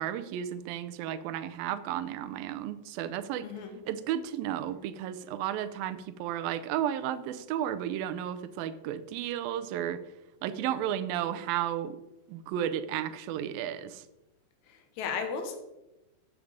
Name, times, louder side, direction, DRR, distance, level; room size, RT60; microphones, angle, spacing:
voice 1, 0.0-3.5 3.9-10.0 10.4-12.0 12.3-14.0, right 10 dB, 85° right, 12 dB, 2.4 m, -33 dB
voice 2, 3.4-3.8 14.7-15.6, left 5 dB, 60° left, 5 dB, 2.4 m, -35 dB
8.5 x 8.1 x 5.0 m, 0.96 s
omnidirectional pair, 4.0 m